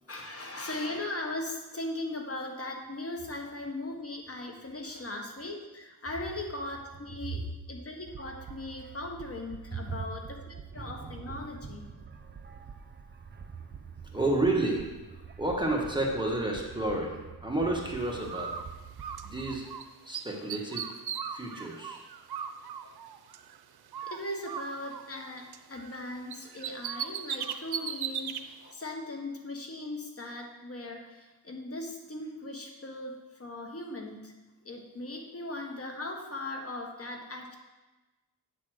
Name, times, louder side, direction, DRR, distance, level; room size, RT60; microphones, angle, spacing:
voice 1, 0.1-11.8 22.8-22.9 24.1-34.3 34.6-37.5, left 2 dB, 40° left, 2 dB, 1.4 m, -39 dB
sound 1, 8.1-19.6, right 6 dB, 30° right, 0.6 m, -46 dB
voice 2, 14.1-18.5 19.2-19.7 20.0-20.9 21.3-22.0, right 2 dB, 10° right, -1 dB, 1.4 m, -31 dB
Bird, 18.3-19.8 20.1-23.6 23.9-26.0 26.3-28.4, right 8 dB, 85° right, 0.6 m, -38 dB
8.9 x 4.2 x 6.3 m, 1.1 s
wide cardioid pair, 85°, 37 cm